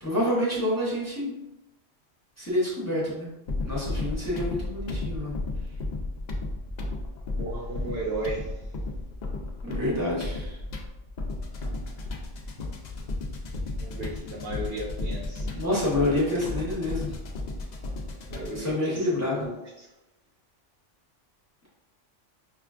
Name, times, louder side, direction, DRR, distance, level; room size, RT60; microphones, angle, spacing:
voice 1, 0.0-1.3 2.4-3.3 3.6-5.3 9.6-10.6 15.5-17.1 18.5-19.5, left 1 dB, 15° left, -5 dB, 0.7 m, -27 dB
sound 1, 3.5-18.7, left 2 dB, 80° left, 0.4 m, -34 dB
voice 2, 7.3-8.6 13.8-15.5 18.3-19.9, right 2 dB, 60° right, -2 dB, 0.7 m, -35 dB
5.2 x 2.3 x 2.4 m, 0.97 s
omnidirectional pair, 1.3 m